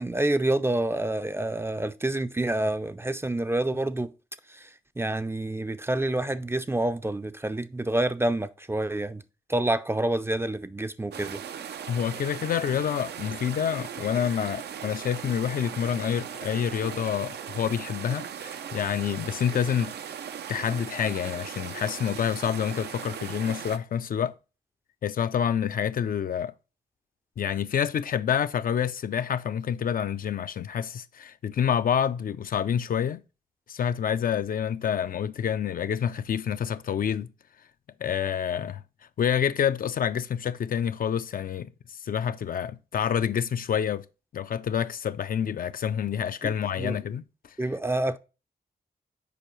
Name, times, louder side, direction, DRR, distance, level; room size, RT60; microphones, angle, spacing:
voice 1, 0.0-4.1 4.5-4.7 5.0-9.2 9.5-11.4 46.4-46.5 46.8-47.0 47.6-48.2, right 1 dB, 15° right, 0.4 m, -28 dB
sound 1, 11.1-23.8, right 8 dB, 75° right, 0.5 m, -38 dB
voice 2, 11.9-19.9 20.5-24.3 25.0-26.5 27.4-33.2 33.7-37.3 38.0-38.8 39.2-41.7 42.0-44.0 44.3-47.2, left 8 dB, 60° left, 0.4 m, -28 dB
6.9 x 4.7 x 3.0 m
cardioid pair, 65°, 17 cm